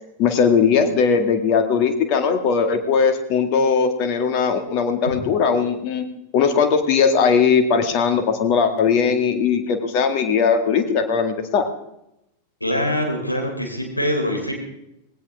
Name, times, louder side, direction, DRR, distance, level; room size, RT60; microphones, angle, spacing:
voice 1, 0.2-6.1 6.3-11.7, left 6 dB, 40° left, 6 dB, 2.1 m, -19 dB
voice 2, 12.6-14.5, equal, 85° left, 1 dB, 4.0 m, -24 dB
18.5 x 17.5 x 3.7 m, 0.83 s
figure-of-eight pair, 90°, 0 cm